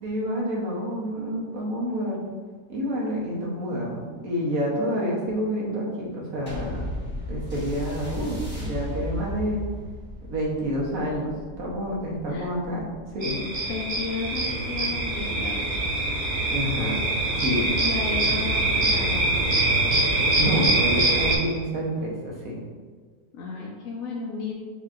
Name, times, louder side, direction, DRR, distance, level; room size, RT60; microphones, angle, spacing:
voice 1, 0.0-2.3 2.7-6.8 7.3-9.6 10.3-12.9 13.1-13.4 16.5-17.1 17.3-17.7 20.3-22.6, equal, 70° right, -3 dB, 1.4 m, -28 dB
sound 1, 6.5-15.2 16.0-16.1, left 1 dB, 10° left, 1.0 m, -36 dB
sound 2, 13.2-21.4, right 2 dB, 50° right, 0.9 m, -24 dB
voice 2, 13.7-15.7 17.8-19.3 23.3-24.5, left 4 dB, 70° left, -3 dB, 1.0 m, -33 dB
7.0 x 2.8 x 2.5 m, 1.5 s
omnidirectional pair, 1.5 m